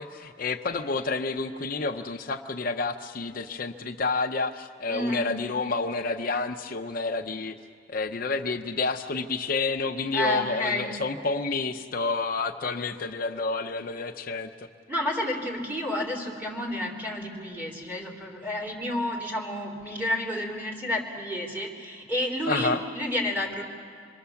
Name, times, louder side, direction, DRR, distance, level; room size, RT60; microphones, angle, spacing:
voice 1, 0.0-7.5 7.9-14.7 22.5-22.8, left 3 dB, 55° left, 4 dB, 0.7 m, -29 dB
voice 2, 4.9-5.3 10.1-10.9 14.9-23.6, left 1 dB, 10° right, -3 dB, 3.6 m, -30 dB
26.5 x 23.0 x 7.1 m, 2.2 s
head